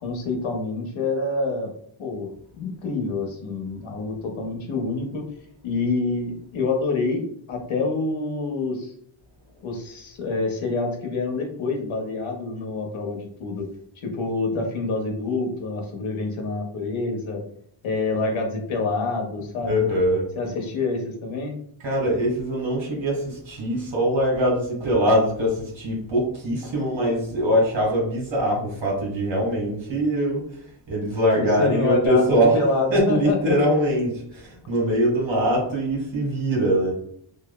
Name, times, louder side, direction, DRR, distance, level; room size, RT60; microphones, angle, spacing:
voice 1, 0.0-1.7 2.0-5.3 5.6-8.9 9.6-13.7 14.0-17.4 17.8-19.9 20.4-21.5 31.4-33.6, left 3 dB, 85° left, 2 dB, 0.8 m, -27 dB
voice 2, 19.6-20.3 21.8-30.4 30.9-32.6 32.9-36.9, equal, 70° right, -2 dB, 1.5 m, -22 dB
3.1 x 2.0 x 2.2 m, 0.66 s
cardioid pair, 100°, 47 cm